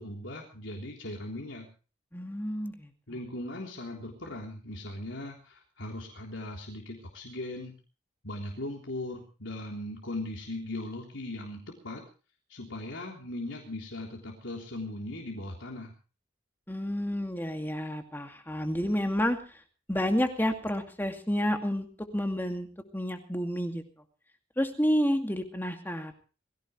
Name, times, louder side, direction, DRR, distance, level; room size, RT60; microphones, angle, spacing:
voice 1, 0.0-1.7 3.1-7.7 8.2-12.0 12.5-15.9, left 1 dB, 85° left, 0 dB, 3.6 m, -39 dB
voice 2, 2.1-2.9 16.7-19.4 19.9-22.7 22.9-23.8 24.6-26.1, equal, 10° left, 5 dB, 2.3 m, -30 dB
22.5 x 16.5 x 3.3 m, 0.36 s
head